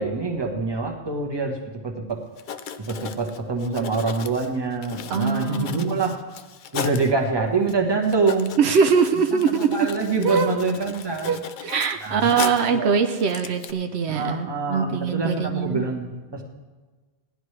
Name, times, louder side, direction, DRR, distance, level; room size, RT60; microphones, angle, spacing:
voice 1, 0.0-1.6 1.8-2.2 2.9-6.2 6.7-8.6 9.3-11.3 12.0-12.4 12.7-12.9 14.1-16.4, right 4 dB, 25° right, 1 dB, 1.2 m, -25 dB
Writing, 2.1-2.2 2.4-7.1 7.7-7.8 8.0-12.8 13.2-13.7, left 7 dB, 55° left, 0.7 m, -36 dB
voice 2, 5.1-5.9 8.6-9.9 10.2-10.6 11.3-15.9, right 6 dB, 80° right, 7 dB, 0.9 m, -22 dB
17.5 x 11.0 x 3.3 m, 1.3 s
omnidirectional pair, 1.1 m